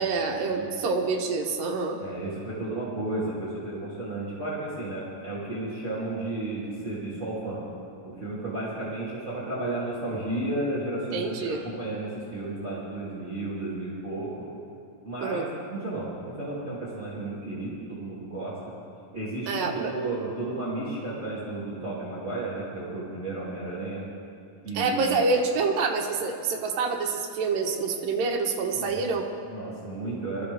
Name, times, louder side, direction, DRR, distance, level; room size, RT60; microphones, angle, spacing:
voice 1, 0.0-2.0 11.1-11.6 15.2-15.5 19.5-19.9 24.7-29.3, right 4 dB, 85° right, 1 dB, 3.0 m, -27 dB
voice 2, 2.0-7.6 8.0-14.5 15.0-15.4 15.7-18.6 19.1-24.0 24.6-25.1 28.7-29.0 29.4-30.4, right 2 dB, 25° right, -8 dB, 2.6 m, -33 dB
22.0 x 14.0 x 3.5 m, 2.6 s
omnidirectional pair, 3.9 m